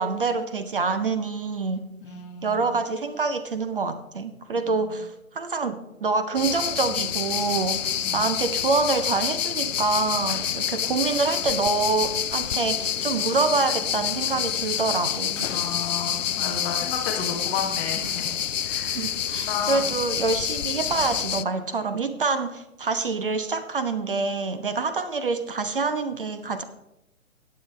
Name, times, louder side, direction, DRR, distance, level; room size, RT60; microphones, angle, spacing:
voice 1, 0.0-1.8 2.4-15.5 18.9-26.6, right 4 dB, 40° right, 11 dB, 0.6 m, -26 dB
voice 2, 2.0-2.7 4.7-5.0 8.0-8.3 10.8-10.9 15.5-19.8, left 6 dB, 10° left, 1 dB, 0.7 m, -33 dB
sound 1, 6.4-21.4, left 9 dB, 60° left, 0.5 m, -28 dB
17.0 x 7.5 x 3.2 m, 0.90 s
figure-of-eight pair, 135°, 43 cm